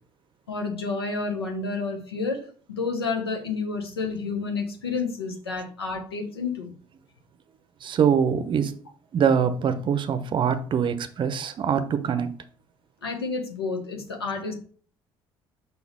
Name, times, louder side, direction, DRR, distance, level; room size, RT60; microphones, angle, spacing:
voice 1, 0.5-6.7 13.0-14.5, left 4 dB, 80° left, 1.0 m, -30 dB
voice 2, 7.8-8.8 9.1-12.3, right 7 dB, 40° right, 0.7 m, -23 dB
5.5 x 3.9 x 4.6 m
figure-of-eight pair, 50°, 13 cm